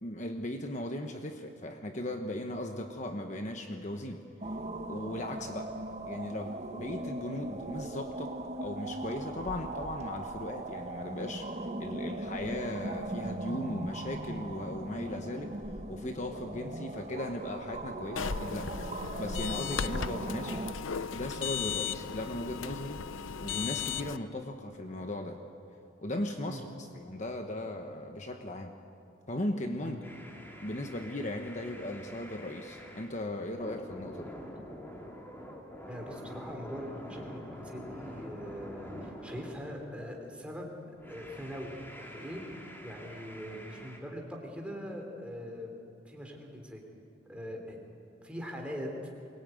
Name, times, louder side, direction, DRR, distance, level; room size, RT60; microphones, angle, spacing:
voice 1, 0.0-4.2 4.9-5.7 6.1-8.3 8.6-11.5 11.8-15.5 15.9-18.8 19.2-20.6 21.1-23.0 23.4-25.4 26.0-28.7 29.3-30.0 30.6-34.3, left 1 dB, 35° left, 5 dB, 1.1 m, -37 dB
sound 1, 4.4-20.7, right 2 dB, 35° right, 1.1 m, -39 dB
sound 2, 18.2-24.2, left 7 dB, 85° left, 0.6 m, -36 dB
sound 3, 30.0-33.2 33.6-40.2 41.0-44.0, equal, 10° left, 2.7 m, -46 dB
voice 2, 35.9-40.7 41.1-42.4 42.8-45.8 46.0-46.8 47.2-47.8 48.2-48.9, equal, 5° right, 1 dB, 3.3 m, -42 dB
23.0 x 20.5 x 9.2 m, 2.6 s
head